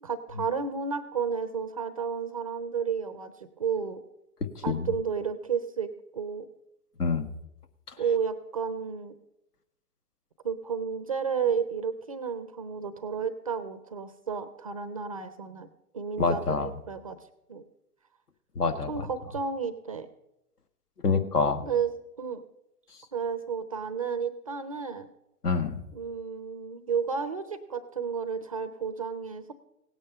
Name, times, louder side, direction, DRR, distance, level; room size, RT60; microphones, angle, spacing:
voice 1, 0.0-4.0 4.6-6.5 8.0-9.1 10.4-15.7 15.9-17.2 17.5-17.6 18.9-20.1 21.6-21.9 22.2-22.4 23.1-25.1 25.9-29.5, right 6 dB, 25° right, 12 dB, 0.4 m, -32 dB
voice 2, 4.5-4.9 7.0-7.3 16.2-16.7 18.5-19.1 21.0-21.6 25.4-25.8, left 4 dB, 70° left, 9 dB, 1.5 m, -26 dB
17.0 x 9.1 x 5.5 m, 0.87 s
figure-of-eight pair, 120°, 47 cm